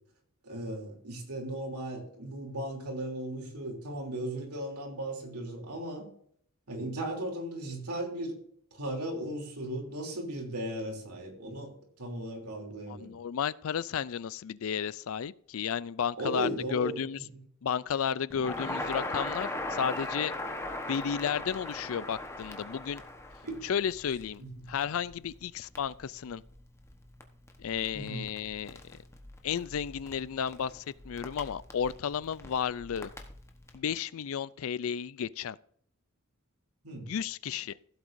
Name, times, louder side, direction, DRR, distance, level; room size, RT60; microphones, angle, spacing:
voice 1, 0.4-6.0 6.7-8.3 8.7-11.7 12.0-13.1 16.2-17.2 23.4-23.6 24.4-24.6 27.9-28.2 36.8-37.1, right 1 dB, 85° right, 3.1 m, -37 dB
voice 2, 12.9-17.2 17.6-20.3 20.9-23.0 23.6-24.4 24.7-26.4 27.6-28.8 29.4-33.1 33.7-35.6 37.1-37.7, left 7 dB, 65° left, 0.4 m, -33 dB
Crackle, 18.3-33.8, left 2 dB, 10° left, 1.1 m, -40 dB
15.5 x 8.0 x 2.6 m
head